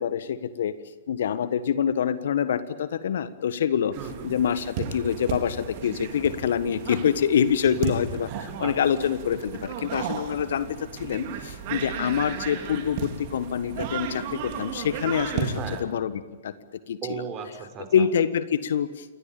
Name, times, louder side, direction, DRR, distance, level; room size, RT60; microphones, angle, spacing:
voice 1, 1.1-2.6 3.0-3.9 4.3-4.6 4.9-5.5 5.8-8.3 8.6-9.4 9.9-10.6 11.1-11.2 11.7-13.0 13.3-14.1 14.6-14.7 15.0-15.5 15.8-16.1 17.9-18.4 18.7-18.9, left 8 dB, 60° left, 14 dB, 1.4 m, -24 dB
voice 2, 3.9-4.3 7.6-7.9 8.3-8.7 15.5-15.8 17.0-18.1, right 7 dB, 30° right, 7 dB, 5.0 m, -36 dB
sound 1, 3.9-15.8, right 7 dB, 45° right, 4.0 m, -34 dB
28.5 x 23.5 x 7.2 m, 1.3 s
figure-of-eight pair, 110°, 0 cm